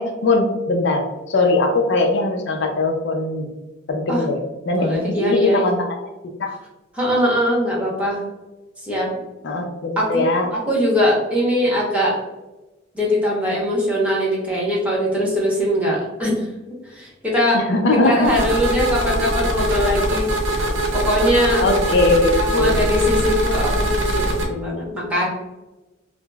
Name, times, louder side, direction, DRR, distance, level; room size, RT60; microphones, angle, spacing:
voice 1, 0.0-3.5 3.9-4.4 4.7-5.8 6.4-6.5 9.4-10.5 17.5-18.3 21.6-22.8, left 2 dB, 60° left, 2 dB, 0.5 m, -20 dB
voice 2, 4.7-5.7 6.9-8.2 8.8-9.2 10.0-10.2 10.5-12.2 12.9-16.5 16.8-17.6 18.0-21.6 22.4-25.3, equal, 5° right, -5 dB, 1.0 m, -21 dB
sound 1, 18.2-24.5, right 1 dB, 65° right, 0.7 m, -22 dB
4.7 x 2.0 x 2.3 m, 1.1 s
head